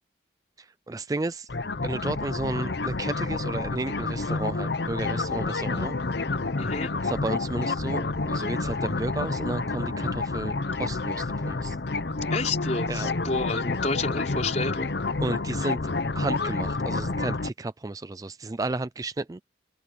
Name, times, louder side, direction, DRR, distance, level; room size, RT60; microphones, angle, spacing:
voice 1, 0.6-1.5 1.8-6.0 7.0-11.8 12.9-13.4 15.2-15.8 16.1-19.4, right 2 dB, 20° right, 0.3 m, -33 dB
sound 1, 1.5-17.5, left 3 dB, 60° left, 0.8 m, -29 dB
voice 2, 6.6-6.9 12.3-14.9, left 3 dB, 35° left, 4.8 m, -30 dB
open air
head